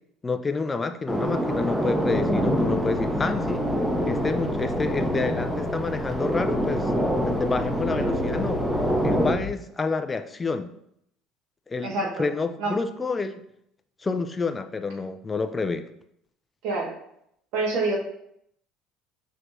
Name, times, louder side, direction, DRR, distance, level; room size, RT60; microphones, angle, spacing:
voice 1, 0.2-3.6 4.1-6.9 7.2-8.6 9.0-10.7 11.7-13.3 14.0-15.9, left 4 dB, 25° left, 8 dB, 0.3 m, -29 dB
sound 1, 1.1-9.3, equal, 5° right, 0.7 m, -26 dB
sound 2, 2.0-9.5, left 5 dB, 75° left, 1.1 m, -36 dB
voice 2, 11.8-12.3 12.6-12.7 16.6-17.0 17.5-18.0, right 2 dB, 70° right, -2 dB, 1.3 m, -27 dB
5.9 x 3.3 x 2.6 m, 0.74 s
supercardioid pair, 90°, 0 cm